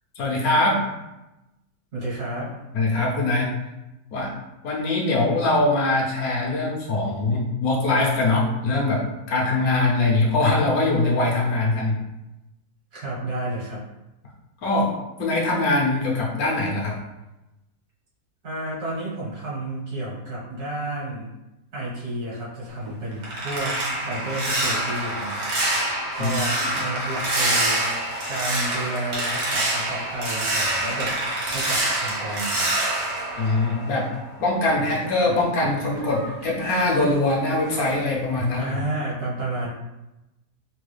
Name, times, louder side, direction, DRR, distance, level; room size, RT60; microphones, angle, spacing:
voice 1, 0.2-0.9 2.7-3.5 4.1-4.3 4.6-12.0 14.6-14.9 15.2-17.0 26.2-26.4 26.7-26.8 33.4-34.1 34.4-38.7, left 2 dB, 70° left, -3 dB, 1.1 m, -22 dB
voice 2, 1.9-2.6 12.9-13.8 18.4-21.3 21.7-25.5 26.1-27.9 28.3-31.2 31.5-32.7 38.5-39.7, right 1 dB, 70° right, -8 dB, 1.6 m, -31 dB
sound 1, 22.7-34.3 34.7-37.3 37.7-38.0 38.4-38.6, right 1 dB, 90° right, 1.6 m, -26 dB
3.6 x 2.3 x 3.2 m, 0.98 s
omnidirectional pair, 1.7 m